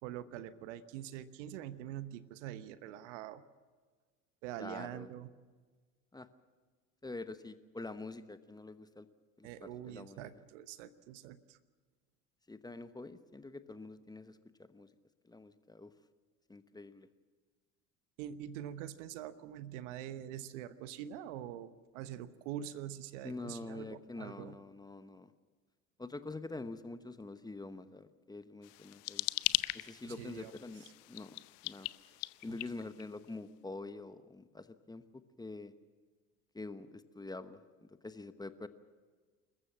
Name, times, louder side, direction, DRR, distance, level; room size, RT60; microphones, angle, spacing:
voice 1, 0.0-3.4 4.4-5.3 9.4-11.6 18.2-24.6 30.1-30.5 32.5-32.9, right 11 dB, 65° right, 14 dB, 1.1 m, -45 dB
voice 2, 4.6-5.1 6.1-6.3 7.0-9.1 9.4-10.3 12.5-14.4 14.7-14.9 15.2-15.9 16.5-17.1 23.2-25.3 26.0-29.3 29.7-31.4 31.6-31.9 32.4-35.0 35.4-35.7 36.5-38.7, left 2 dB, 10° left, 12 dB, 1.0 m, -46 dB
sound 1, 28.6-33.3, left 23 dB, 60° left, 0.7 m, -39 dB
26.5 x 14.5 x 7.4 m, 1.4 s
hypercardioid pair, 70°, 39 cm